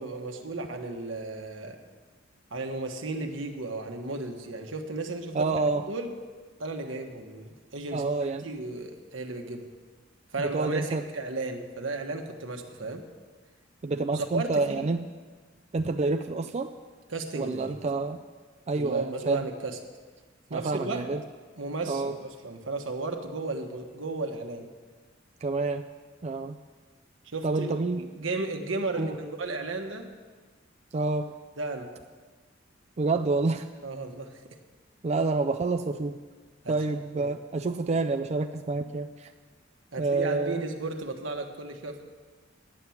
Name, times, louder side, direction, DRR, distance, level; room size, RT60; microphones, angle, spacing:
voice 1, 0.0-1.8 2.5-5.5 5.9-6.1 6.6-8.0 8.4-9.7 10.3-10.8 11.1-13.0 14.1-14.9 17.1-17.8 18.7-19.8 20.5-21.0 21.6-24.7 27.2-30.1 31.6-31.9 33.8-34.5 36.6-36.7 37.1-37.3 39.9-42.0, right 3 dB, 80° right, 4 dB, 1.3 m, -34 dB
voice 2, 5.3-5.8 7.9-8.5 10.4-11.0 13.8-15.0 15.7-16.7 17.3-18.2 18.7-19.5 20.5-21.2 21.9-22.2 25.4-25.8 26.2-26.6 27.4-28.0 29.0-29.2 30.9-31.4 33.0-33.7 35.0-36.2 36.7-39.3 40.0-40.6, right 3 dB, 35° right, 6 dB, 0.4 m, -28 dB
9.9 x 7.1 x 9.2 m, 1.4 s
head